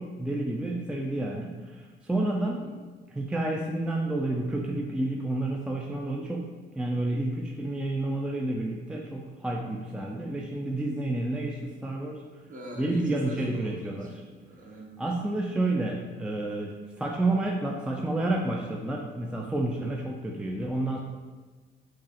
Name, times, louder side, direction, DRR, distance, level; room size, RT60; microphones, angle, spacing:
voice 1, 0.0-2.6 3.1-6.5 6.8-12.2 12.8-14.1 15.0-21.0, right 2 dB, 5° right, -1 dB, 0.3 m, -30 dB
voice 2, 12.5-15.0 19.7-20.0, equal, 40° right, -2 dB, 0.9 m, -43 dB
4.7 x 2.4 x 2.9 m, 1.4 s
cardioid pair, 90°, 20 cm